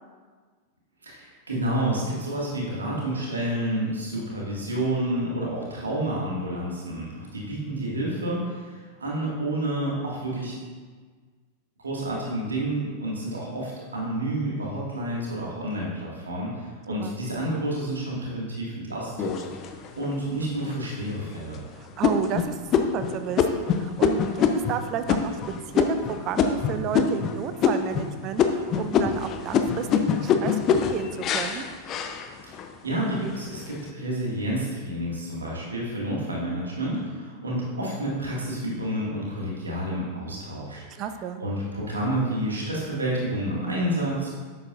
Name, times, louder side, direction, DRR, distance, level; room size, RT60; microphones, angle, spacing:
voice 1, 1.0-10.6 11.8-19.3 19.6-21.6 32.8-41.0 41.4-44.3, right 1 dB, 75° right, -4 dB, 2.1 m, -29 dB
sound 1, 19.2-20.0 20.6-20.7 21.2-21.6 22.0-27.3 27.6-28.1 28.4-32.7 33.2-33.7, left 7 dB, 35° left, 0.6 m, -24 dB
voice 2, 21.8-24.2 24.5-25.4 25.7-31.6 41.0-41.4, right 8 dB, 35° right, 10 dB, 0.5 m, -32 dB
10.5 x 8.3 x 2.6 m, 1.5 s
figure-of-eight pair, 90°, 0 cm